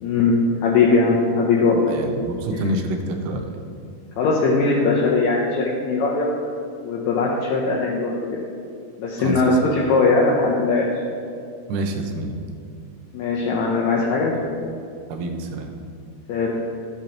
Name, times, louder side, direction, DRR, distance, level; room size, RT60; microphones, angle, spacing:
voice 1, 0.0-1.9 2.5-2.6 4.2-6.3 6.8-8.4 9.0-10.9 13.1-14.3 16.3-16.5, left 3 dB, 75° left, -3 dB, 1.7 m, -20 dB
voice 2, 1.9-3.6 9.2-9.4 11.7-12.3 14.4-14.5 15.1-15.7, right 1 dB, 85° right, 3 dB, 2.2 m, -27 dB
11.5 x 5.2 x 2.9 m, 2.4 s
omnidirectional pair, 3.8 m